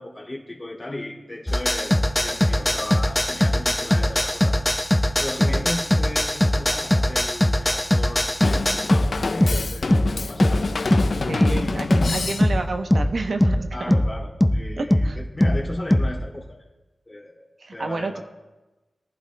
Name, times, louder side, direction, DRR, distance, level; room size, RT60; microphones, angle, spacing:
voice 1, 0.0-4.6 5.2-10.7 11.5-12.0 13.7-16.6 17.1-17.5 17.7-18.2, left 1 dB, 30° left, -2 dB, 2.5 m, -35 dB
sound 1, 1.5-16.2, left 1 dB, 10° left, 0.6 m, -21 dB
Drum kit / Drum, 8.4-12.8, left 3 dB, 60° left, 0.4 m, -27 dB
voice 2, 11.3-13.9 14.8-15.2 17.6-18.2, right 3 dB, 70° right, 6 dB, 0.7 m, -30 dB
21.5 x 11.5 x 2.2 m, 1.1 s
wide cardioid pair, 70°, 0 cm